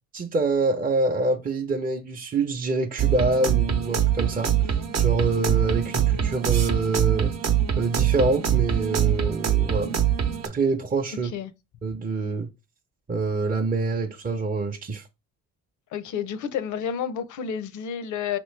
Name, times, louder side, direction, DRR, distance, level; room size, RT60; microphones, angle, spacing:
voice 1, 0.1-7.3 7.8-10.0 10.4-11.3 11.8-12.5 13.1-15.1, right 3 dB, 30° right, 0.6 m, -26 dB
sound 1, 3.0-10.5, right 9 dB, 60° right, 0.8 m, -23 dB
voice 2, 15.9-18.4, left 8 dB, 75° left, 0.7 m, -30 dB
5.4 x 3.0 x 3.2 m
cardioid pair, 90°, 30 cm